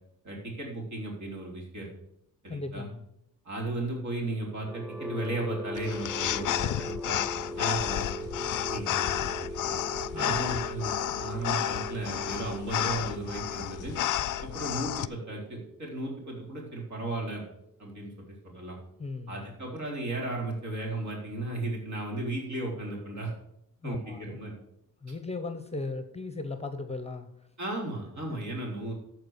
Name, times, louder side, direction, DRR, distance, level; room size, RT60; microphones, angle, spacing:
voice 1, 0.2-1.9 2.4-2.8 3.5-8.3 8.7-9.6 10.1-14.0 14.4-17.4 17.8-18.8 19.3-23.3 23.8-24.5 27.6-28.9, right 2 dB, 50° right, -1 dB, 3.9 m, -35 dB
voice 2, 2.5-3.0 10.0-10.6 19.0-19.5 23.8-24.4 25.0-27.3 28.3-28.4, left 3 dB, 20° left, 9 dB, 0.9 m, -37 dB
sound 1, 4.5-18.4, right 1 dB, 5° right, 0.4 m, -40 dB
sound 2, 5.8-15.1, left 12 dB, 60° left, 0.5 m, -31 dB
13.5 x 4.7 x 6.6 m, 0.78 s
cardioid pair, 115°, 36 cm